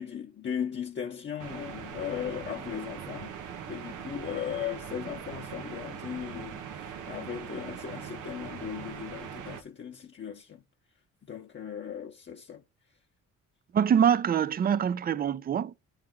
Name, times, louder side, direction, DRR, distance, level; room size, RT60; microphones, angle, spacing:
voice 1, 0.0-3.4 3.7-10.6 11.3-12.6, left 8 dB, 40° left, 0.7 m, -37 dB
sound 1, 1.4-9.6, right 8 dB, 85° right, 0.9 m, -41 dB
voice 2, 13.7-15.8, right 8 dB, 30° right, 0.4 m, -24 dB
9.4 x 3.2 x 3.5 m
cardioid pair, 90°, 30 cm